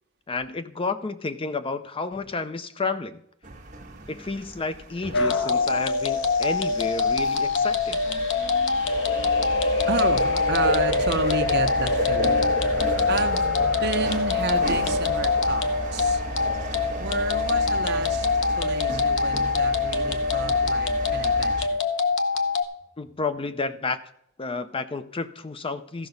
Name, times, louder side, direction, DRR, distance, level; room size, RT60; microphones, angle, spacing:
voice 1, 0.3-3.2 4.1-8.0 23.0-24.0 24.4-26.1, left 3 dB, 25° left, 11 dB, 0.6 m, -31 dB
sound 1, 3.4-21.7, right 1 dB, 35° right, 1.7 m, -34 dB
sound 2, 5.1-22.6, left 4 dB, 60° left, 0.9 m, -24 dB
sound 3, 8.9-19.1 19.5-19.6, left 2 dB, 45° left, 1.7 m, -30 dB
voice 2, 9.7-16.2 17.0-18.3 18.6-21.8, right 3 dB, 55° right, 7 dB, 1.0 m, -31 dB
14.5 x 5.9 x 5.3 m, 0.72 s
head